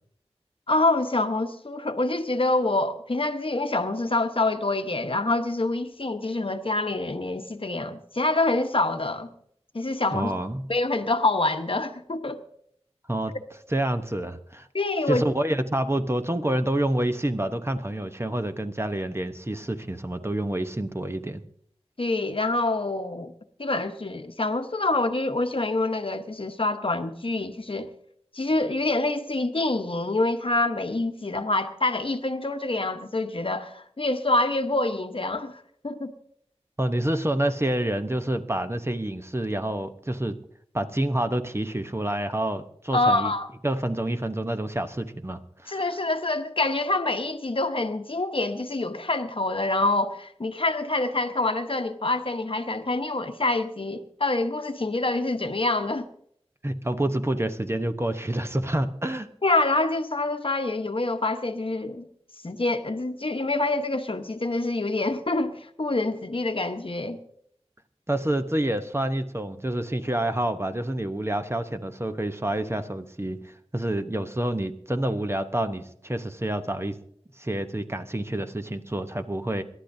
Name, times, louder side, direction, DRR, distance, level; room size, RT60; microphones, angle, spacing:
voice 1, 0.7-9.3 9.7-10.3 10.7-12.4 14.7-15.2 22.0-23.3 23.6-27.9 28.3-36.1 42.9-43.5 45.7-56.1 59.4-62.1 62.4-67.2, left 2 dB, 55° left, 1.0 m, -26 dB
voice 2, 10.1-10.7 13.1-13.3 13.7-14.7 15.1-21.4 36.8-40.4 40.7-43.3 43.6-45.9 56.6-59.3 68.1-77.0 77.4-79.6, right 1 dB, 25° right, 0.8 m, -28 dB
26.5 x 11.5 x 2.7 m
wide cardioid pair, 55°, 11 cm